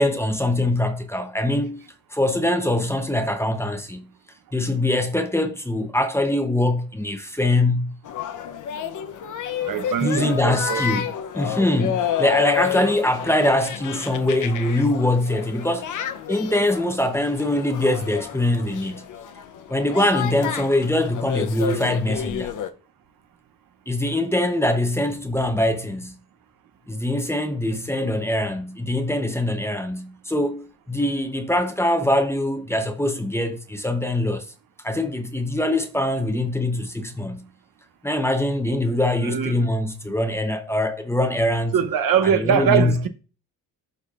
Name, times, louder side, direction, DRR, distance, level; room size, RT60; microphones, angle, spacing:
voice 1, 0.0-1.8 2.1-4.1 4.5-8.0 10.0-15.9 16.3-19.1 19.7-22.5 23.9-26.2 26.9-34.5 34.8-37.5 38.0-41.7 42.4-43.0, left 1 dB, 5° left, 0.7 m, -23 dB
sound 1, 8.0-22.7, left 8 dB, 55° left, 0.7 m, -30 dB
voice 2, 9.7-10.9 39.2-39.7 41.7-43.1, right 8 dB, 65° right, 0.8 m, -22 dB
11.5 x 4.1 x 2.4 m
cardioid pair, 110°, 36 cm